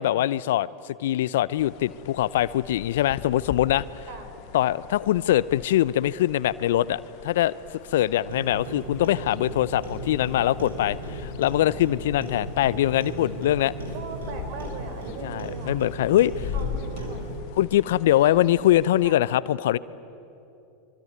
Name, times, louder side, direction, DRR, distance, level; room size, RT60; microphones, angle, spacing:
voice 1, 0.0-4.1 4.5-7.6 7.9-13.7 15.2-16.5 17.6-19.8, left 13 dB, 70° left, 19 dB, 0.6 m, -23 dB
sound 1, 1.6-19.1, left 10 dB, 55° left, 1.2 m, -41 dB
Clock, 8.3-17.4, right 1 dB, 80° right, 5.2 m, -36 dB
voice 2, 13.9-15.8 16.5-17.3 18.1-18.5 19.0-19.2, right 4 dB, 60° right, 7 dB, 4.6 m, -40 dB
25.5 x 23.5 x 9.4 m, 2.8 s
hypercardioid pair, 95°, 0 cm